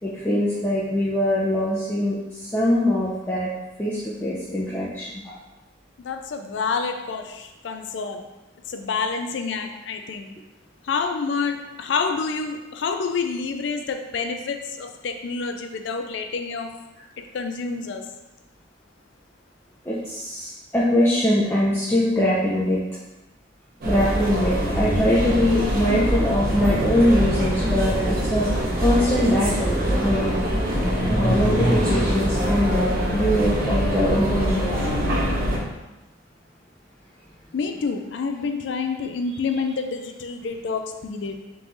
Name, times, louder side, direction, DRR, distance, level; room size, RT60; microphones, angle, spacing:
voice 1, 0.0-3.5 3.8-5.4 19.9-22.8 23.8-30.3 31.1-34.6, left 1 dB, 10° left, -7 dB, 0.5 m, -22 dB
voice 2, 6.0-8.2 8.7-10.3 10.8-16.7 17.2-18.0 37.5-41.3, left 5 dB, 70° left, 6 dB, 0.4 m, -28 dB
sound 1, 23.8-35.6, equal, 55° right, 1.1 m, -23 dB
3.7 x 3.1 x 3.8 m, 1.0 s
head